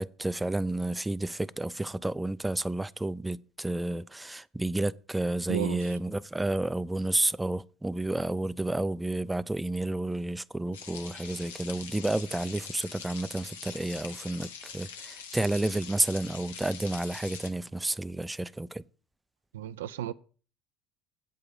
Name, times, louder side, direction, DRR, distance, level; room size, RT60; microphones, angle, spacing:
voice 1, 0.0-18.8, right 2 dB, 10° right, 0.4 m, -31 dB
voice 2, 5.5-6.0 19.5-20.1, right 12 dB, 85° right, 0.4 m, -34 dB
sound 1, 10.7-17.5, left 6 dB, 85° left, 1.0 m, -44 dB
8.5 x 4.9 x 7.0 m
hypercardioid pair, 70°, 0 cm